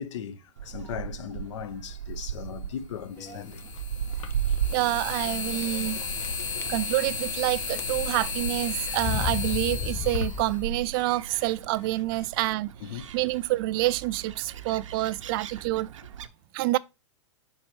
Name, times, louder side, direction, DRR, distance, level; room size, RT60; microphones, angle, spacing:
voice 1, 0.0-3.6 6.4-6.6 12.2-12.3 12.8-13.1, left 8 dB, 75° left, 0.7 m, -38 dB
Gull seagull, 0.6-16.3, right 9 dB, 90° right, 0.6 m, -37 dB
sound 1, 1.9-2.0 3.4-11.3, left 5 dB, 90° left, 1.2 m, -33 dB
sound 2, 3.2-3.6 4.2-4.3 4.6-4.7 5.6-6.0 6.2-7.4 7.7-8.2 8.9-10.9, left 9 dB, 15° left, 0.4 m, -34 dB
voice 2, 4.7-6.0 6.7-12.7 13.1-15.9 16.5-16.8, right 18 dB, 45° right, 0.4 m, -27 dB
5.4 x 4.4 x 4.4 m
hypercardioid pair, 135°, 16 cm